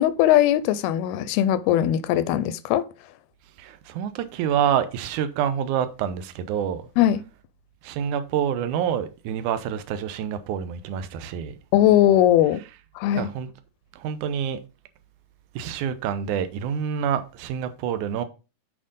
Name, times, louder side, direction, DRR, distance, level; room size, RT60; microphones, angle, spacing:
voice 1, 0.0-2.9 7.0-7.2 11.7-12.6 13.0-13.3, left 12 dB, 85° left, 2.5 m, -19 dB
voice 2, 3.6-6.8 7.8-11.5 13.1-13.5 13.9-14.6 15.6-18.2, right 8 dB, 75° right, 1.9 m, -27 dB
8.7 x 5.0 x 5.2 m
omnidirectional pair, 4.4 m